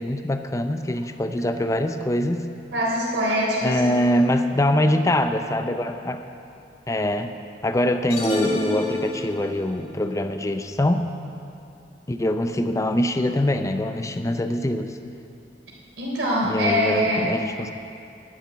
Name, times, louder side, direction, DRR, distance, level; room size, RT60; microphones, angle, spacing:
voice 1, 0.0-2.5 3.6-6.2 6.9-7.3 7.6-11.1 12.1-15.0 16.4-17.7, left 1 dB, 20° left, 8 dB, 0.5 m, -23 dB
voice 2, 2.7-3.8 16.0-17.3, equal, 90° right, -4 dB, 3.6 m, -23 dB
sound 1, 8.1-9.6, left 1 dB, 35° left, 2.1 m, -27 dB
11.5 x 7.2 x 9.5 m, 2.6 s
head